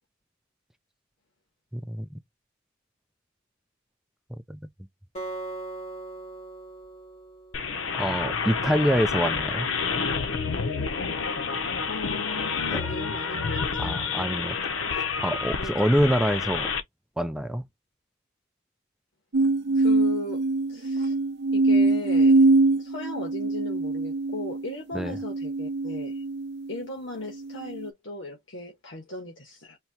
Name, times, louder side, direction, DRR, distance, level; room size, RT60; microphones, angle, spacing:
voice 1, 1.7-2.2 4.5-4.6 8.0-9.7 12.7-12.8 13.8-14.6 14.9-16.7 17.2-17.6 24.9-25.2, equal, 5° right, 0.3 m, -26 dB
Acoustic guitar, 5.1-8.4, right 2 dB, 35° left, 2.8 m, -40 dB
sound 1, 7.5-16.8, left 5 dB, 90° left, 0.7 m, -29 dB
voice 2, 11.9-14.0 14.4-14.5 15.6-15.8 19.7-20.4 20.7-21.1 21.5-22.4 22.8-26.2 26.7-29.8, left 2 dB, 70° left, 1.4 m, -37 dB
sound 2, 19.3-26.8 27.4-27.9, right 3 dB, 60° right, 0.6 m, -23 dB
4.4 x 2.8 x 2.8 m
head